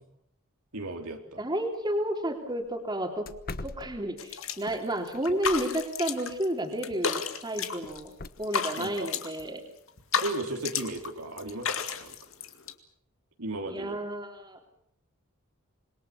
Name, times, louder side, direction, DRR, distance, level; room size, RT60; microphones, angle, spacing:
voice 1, 0.7-1.4 8.8-9.1 10.2-12.2 13.4-14.0, right 2 dB, 85° right, 3 dB, 4.0 m, -35 dB
voice 2, 1.4-3.3 3.6-8.1 8.4-9.6 13.6-14.7, right 1 dB, 20° right, 3 dB, 3.3 m, -31 dB
sound 1, 1.6-1.8 2.2-2.3 2.7-2.8 3.2-4.5 5.1-5.9 7.9-8.3, left 2 dB, 45° left, 1.1 m, -42 dB
sound 2, 4.2-4.8 5.1-6.5 6.7-8.1 8.4-9.4 9.9-11.1 11.4-12.7, left 6 dB, 65° left, 2.3 m, -32 dB
27.0 x 22.5 x 7.1 m, 0.69 s
head